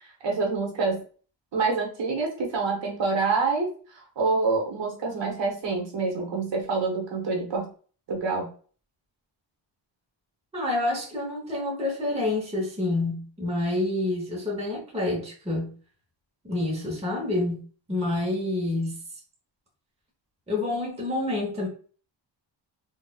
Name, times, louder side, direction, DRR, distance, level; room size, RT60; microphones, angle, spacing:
voice 1, 0.2-1.0 1.5-7.7 8.1-8.5, right 4 dB, 65° right, 1.1 m, -27 dB
voice 2, 10.5-15.7 16.4-17.6 17.9-19.0 20.5-21.7, left 2 dB, 15° right, 0.9 m, -28 dB
4.0 x 2.4 x 2.3 m
wide cardioid pair, 165°, 47 cm